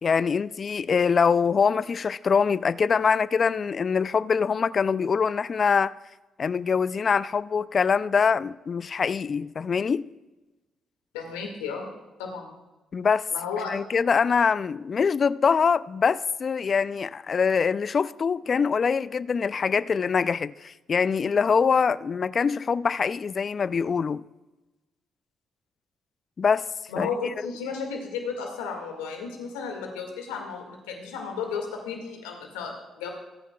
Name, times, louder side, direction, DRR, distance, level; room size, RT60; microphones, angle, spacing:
voice 1, 0.0-5.9 6.4-10.1 12.9-13.2 13.7-24.2 26.4-26.6 27.0-27.1, left 6 dB, 50° left, 0.4 m, -24 dB
voice 2, 11.1-11.9 12.2-12.5 13.3-13.8 26.9-33.1, left 5 dB, 85° left, 1.9 m, -33 dB
21.0 x 9.3 x 2.3 m
hypercardioid pair, 45°, 0 cm